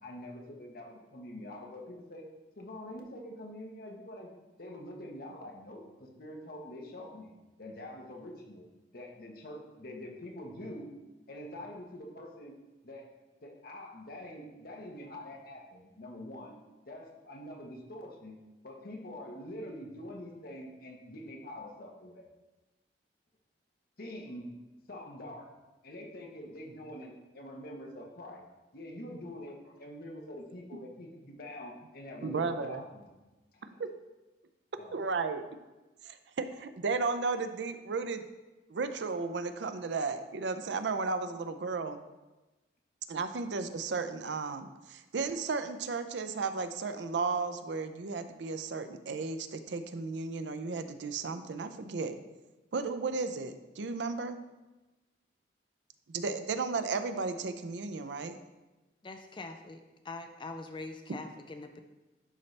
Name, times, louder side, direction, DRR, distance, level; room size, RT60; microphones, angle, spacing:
voice 1, 0.0-2.3 2.6-4.3 4.6-8.7 8.9-10.9 11.3-12.5 12.8-13.1 13.4-16.6 16.9-18.4 18.6-22.2 24.0-24.5 24.9-25.5 25.8-28.4 28.7-33.1 33.5-33.8 34.8-35.0, left 1 dB, 60° left, 1 dB, 1.2 m, -45 dB
voice 2, 32.2-32.8 33.8-33.9 34.9-35.4 36.0-38.2 38.7-42.0 43.1-52.2 52.7-54.4 56.1-58.4, right 4 dB, 85° right, 10 dB, 0.5 m, -34 dB
voice 3, 59.0-59.8 60.1-61.8, left 3 dB, 30° left, 6 dB, 0.4 m, -43 dB
11.0 x 4.1 x 3.3 m, 1.1 s
head